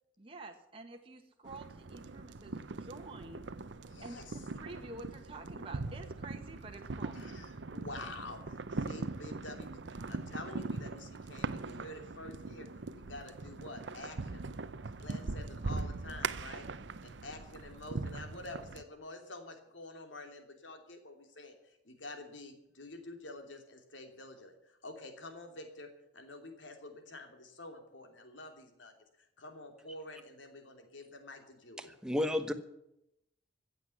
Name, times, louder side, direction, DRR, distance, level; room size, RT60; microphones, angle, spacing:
voice 1, 0.2-3.5 4.0-7.2, right 2 dB, 30° right, 3 dB, 1.4 m, -49 dB
sound 1, 1.5-18.8, right 3 dB, 70° right, 0.7 m, -41 dB
voice 2, 3.9-4.4 7.1-12.7 12.9-14.4 15.0-16.7 17.0-28.9 29.4-31.9, left 2 dB, 80° left, 5 dB, 3.0 m, -48 dB
voice 3, 31.8-32.5, left 1 dB, 5° right, 8 dB, 1.1 m, -32 dB
15.5 x 8.0 x 9.9 m, 0.82 s
head